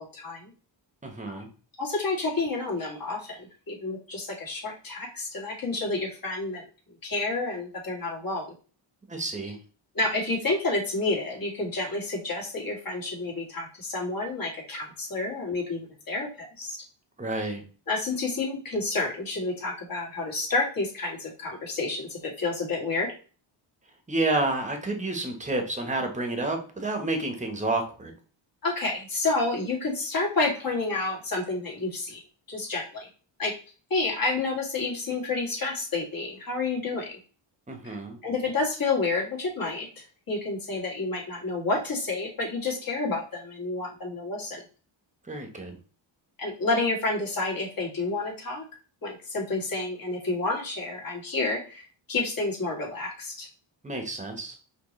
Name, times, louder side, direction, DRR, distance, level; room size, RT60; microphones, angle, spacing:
voice 1, 0.1-0.5 1.3-1.4 1.8-6.6 7.0-8.5 9.9-16.8 17.4-17.5 17.9-23.2 28.6-32.2 32.5-33.1 33.4-33.5 33.9-37.2 37.8-38.0 38.2-44.6 46.4-48.6 49.0-53.5, left 3 dB, 45° left, -2 dB, 2.3 m, -29 dB
voice 2, 1.0-1.5 9.1-9.6 17.2-17.6 24.1-28.1 37.7-38.2 45.3-45.7 53.8-54.5, right 2 dB, 15° right, 4 dB, 1.2 m, -29 dB
5.1 x 3.2 x 3.2 m, 0.37 s
cardioid pair, 95°, 48 cm